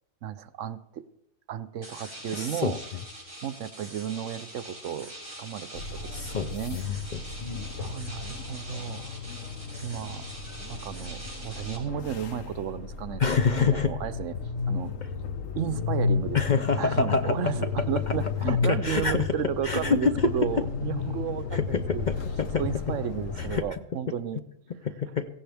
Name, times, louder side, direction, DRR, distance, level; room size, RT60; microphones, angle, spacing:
voice 1, 0.2-1.0 1.5-2.8 3.4-6.0 6.3-6.8 7.8-9.1 9.8-10.3 10.7-14.4 14.7-14.9 15.6-22.1 22.5-24.4, right 9 dB, 75° right, 14 dB, 1.0 m, -33 dB
sound 1, 1.8-11.8, right 1 dB, 40° right, 5.4 m, -44 dB
voice 2, 2.3-2.7 6.1-7.7 13.2-14.0 16.3-17.3 18.6-19.3 19.6-20.3 21.5-22.0 22.4-22.6 23.4-23.6 24.8-25.3, left 5 dB, 45° left, 8 dB, 0.7 m, -26 dB
sound 2, 5.8-23.6, left 5 dB, 75° left, 1.3 m, -33 dB
17.0 x 15.5 x 3.4 m, 0.79 s
omnidirectional pair, 1.4 m